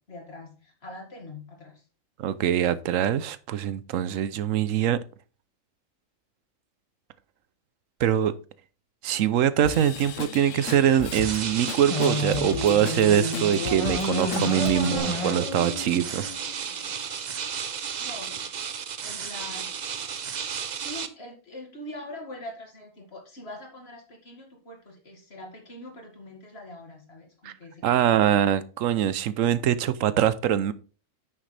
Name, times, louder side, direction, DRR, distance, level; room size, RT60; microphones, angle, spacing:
voice 1, 0.1-1.8 18.0-18.5 19.0-19.9 20.5-28.2, left 1 dB, 50° left, 2.4 m, -43 dB
voice 2, 2.2-5.0 8.0-8.3 9.0-16.3 27.4-27.5 27.8-30.7, right 10 dB, 75° right, 1.0 m, -23 dB
Drum kit / Drum, 9.6-15.0, left 7 dB, 70° left, 1.1 m, -36 dB
sound 1, 11.1-21.1, right 7 dB, 45° right, 0.6 m, -33 dB
sound 2, 11.9-17.0, left 2 dB, 25° left, 1.0 m, -31 dB
9.4 x 6.5 x 3.3 m
omnidirectional pair, 1.4 m